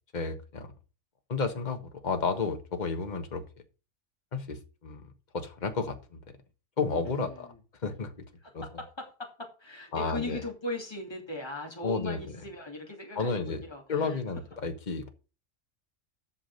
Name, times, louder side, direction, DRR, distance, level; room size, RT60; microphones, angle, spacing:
voice 1, 0.1-0.7 1.3-3.4 4.3-6.2 6.8-7.5 7.8-8.1 8.5-8.6 9.9-10.4 11.8-12.2 13.1-13.6 13.9-15.1, left 4 dB, 35° left, 1.4 m, -32 dB
voice 2, 7.0-7.6 8.4-14.2, left 2 dB, 20° left, 2.9 m, -39 dB
8.4 x 6.2 x 6.3 m
omnidirectional pair, 1.4 m